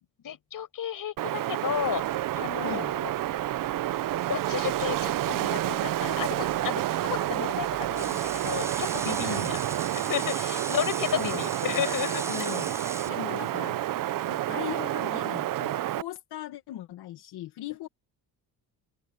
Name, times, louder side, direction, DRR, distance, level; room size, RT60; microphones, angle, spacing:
voice 1, 0.2-3.1 4.3-9.6 10.1-12.5, left 10 dB, 55° left, 6.1 m, -33 dB
Wind, 1.2-16.0, right 14 dB, 55° right, 0.7 m, -29 dB
sound 1, 1.7-9.9, right 14 dB, 85° right, 2.7 m, -47 dB
voice 2, 2.6-2.9 9.2-9.5 11.1-11.5 12.3-12.7 13.1-13.8 14.3-17.9, left 13 dB, 80° left, 2.1 m, -38 dB
sound 2, 8.0-13.1, right 2 dB, 5° right, 0.6 m, -38 dB
open air
cardioid pair, 120°, 39 cm